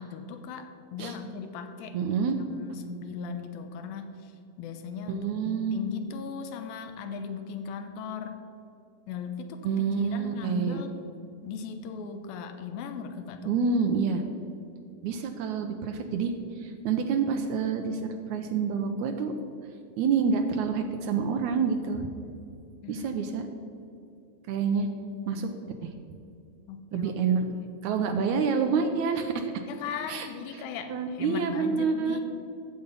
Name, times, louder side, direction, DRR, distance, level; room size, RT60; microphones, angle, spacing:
voice 1, 0.0-2.1 2.5-4.3 4.6-8.4 9.1-11.0 11.4-13.5 22.8-23.3 26.7-27.1 29.7-32.2, left 6 dB, 85° left, 7 dB, 2.6 m, -38 dB
voice 2, 1.9-2.4 5.1-5.8 9.6-10.8 13.4-14.2 15.0-19.3 20.0-22.1 22.9-23.5 24.5-24.9 25.3-26.0 26.9-27.4 27.8-29.5 30.1-30.3 30.5-30.6 30.9-32.2, right 5 dB, 80° right, 5 dB, 1.7 m, -28 dB
14.5 x 7.0 x 5.3 m, 2.6 s
omnidirectional pair, 4.2 m